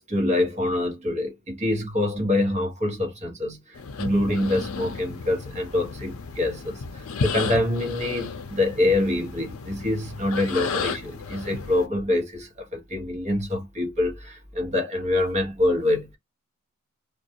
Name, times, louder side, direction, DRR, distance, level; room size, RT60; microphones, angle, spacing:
voice 1, 0.0-16.2, left 1 dB, 30° right, 1.0 m, -25 dB
sound 1, 3.7-11.9, left 5 dB, 65° left, 0.5 m, -33 dB
2.4 x 2.2 x 2.7 m
head